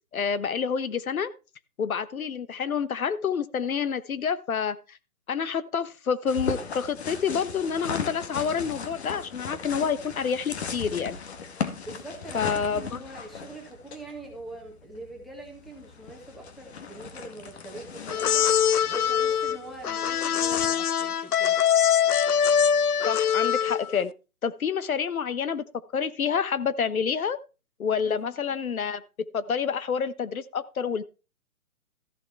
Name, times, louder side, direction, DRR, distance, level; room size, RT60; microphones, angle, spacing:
voice 1, 0.1-1.3 1.8-5.0 5.3-11.2 12.3-13.0 23.1-24.1 24.4-25.6 25.9-27.4 27.8-29.0 29.3-31.0, left 6 dB, 70° left, 15 dB, 1.1 m, -28 dB
sound 1, 6.3-20.7, left 5 dB, 45° left, 2.0 m, -38 dB
voice 2, 11.8-21.6, right 2 dB, ahead, 2 dB, 1.6 m, -43 dB
sound 2, 18.1-24.0, left 8 dB, 90° left, 0.7 m, -23 dB
14.5 x 6.6 x 4.6 m, 0.32 s
hypercardioid pair, 155°, 43 cm